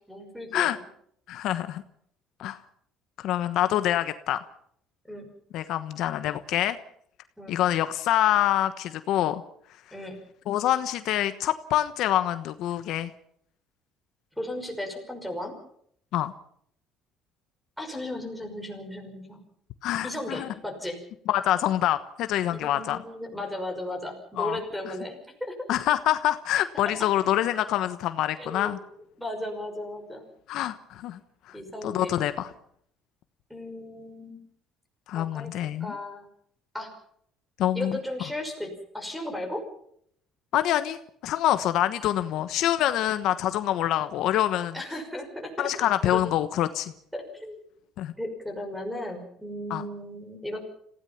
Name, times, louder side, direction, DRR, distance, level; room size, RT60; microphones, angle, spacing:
voice 1, 0.1-0.8 5.1-5.3 7.4-7.6 9.9-10.2 14.4-15.6 17.8-19.4 20.0-21.0 22.5-25.7 28.4-28.8 29.2-30.3 31.5-32.2 33.5-34.4 35.1-35.5 35.8-36.3 36.7-36.9 37.7-39.6 44.7-45.7 46.0-46.3 47.1-47.5 48.2-50.6, left 1 dB, ahead, 5 dB, 5.7 m, -35 dB
voice 2, 1.3-1.8 2.4-2.6 3.2-4.5 5.5-6.8 7.5-9.4 10.5-13.1 16.1-16.3 19.8-20.5 21.3-23.0 24.4-24.6 25.7-28.8 30.5-31.2 31.5-31.6 31.8-32.5 35.1-36.0 37.6-38.0 40.5-44.7 45.6-46.9 48.0-48.1 49.7-49.9, left 12 dB, 65° left, 11 dB, 1.2 m, -26 dB
27.5 x 16.5 x 5.9 m, 0.66 s
cardioid pair, 140°, 0 cm